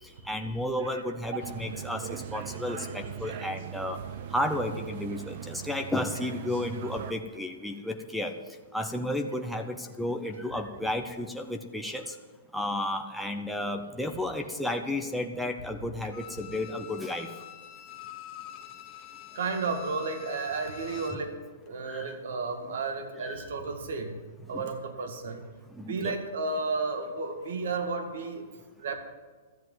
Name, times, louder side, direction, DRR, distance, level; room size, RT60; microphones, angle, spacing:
voice 1, 0.2-4.0 4.3-8.3 8.7-12.1 12.5-17.3 21.8-22.2 23.2-23.5 24.5-24.6 25.7-26.2, left 1 dB, ahead, 2 dB, 0.7 m, -32 dB
sound 1, 1.4-7.1, right 9 dB, 55° right, 0.9 m, -40 dB
Bowed string instrument, 16.1-21.3 21.7-21.8, left 12 dB, 35° left, 1.1 m, -46 dB
voice 2, 19.3-24.2 24.5-25.4 25.8-28.5 28.8-29.0, right 4 dB, 70° right, 6 dB, 2.1 m, -32 dB
13.5 x 7.6 x 9.4 m, 1.4 s
hypercardioid pair, 150°, 0 cm